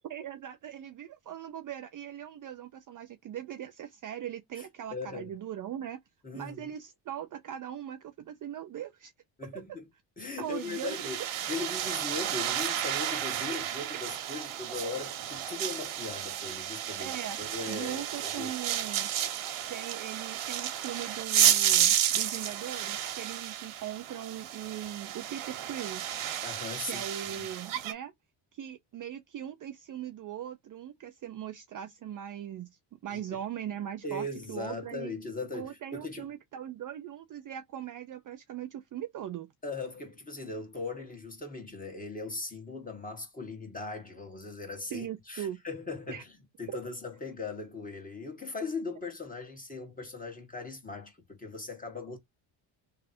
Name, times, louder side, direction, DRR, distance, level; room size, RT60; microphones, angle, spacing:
voice 1, 0.1-6.0 6.3-9.1 9.5-9.6 10.4-11.1 14.3-14.4 17.0-17.4 17.7-19.1 19.7-26.1 26.9-28.1 28.5-35.1 35.5-39.5 44.9-45.6 46.1-46.2 46.7-46.8, right 10 dB, 40° right, 0.4 m, -40 dB
voice 2, 4.6-5.3 6.2-6.7 9.4-9.9 10.2-11.2 11.5-17.1 17.4-18.5 26.4-27.1 27.4-27.5 33.1-33.4 34.0-36.3 39.6-52.2, left 3 dB, 15° left, 1.6 m, -39 dB
sound 1, 10.5-27.9, right 10 dB, 80° right, 1.2 m, -31 dB
3.2 x 2.4 x 4.2 m
cardioid pair, 120°, 49 cm